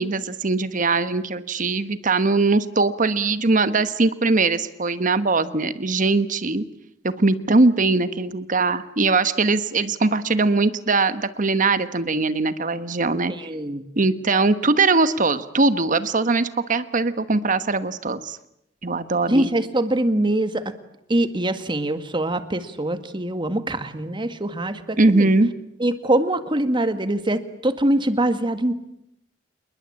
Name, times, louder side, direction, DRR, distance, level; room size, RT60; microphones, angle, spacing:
voice 1, 0.0-6.6 7.0-13.3 14.0-18.4 18.8-19.5 25.0-25.5, right 3 dB, 45° right, 12 dB, 1.2 m, -21 dB
voice 2, 13.4-13.8 19.3-20.6 21.1-25.3 25.8-28.8, right 1 dB, 25° right, 10 dB, 1.8 m, -23 dB
28.0 x 21.0 x 8.7 m, 0.80 s
head